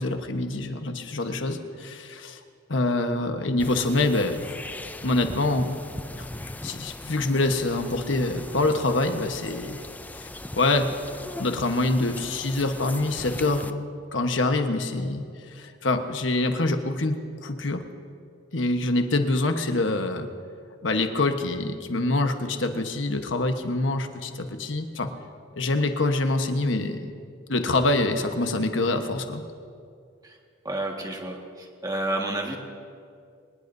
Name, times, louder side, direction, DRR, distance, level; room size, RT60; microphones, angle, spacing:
voice 1, 0.0-2.4 2.7-4.5 5.0-5.8 6.2-6.3 6.6-9.8 10.2-10.9 11.4-17.2 17.4-17.8 18.5-20.3 20.8-25.1 25.5-27.1 27.5-29.4, left 2 dB, 85° left, 6 dB, 1.2 m, -25 dB
sound 1, 3.6-13.7, left 1 dB, 10° left, 0.4 m, -39 dB
voice 2, 30.6-32.6, right 1 dB, 20° right, 1 dB, 1.7 m, -30 dB
25.0 x 19.5 x 2.7 m, 2.3 s
head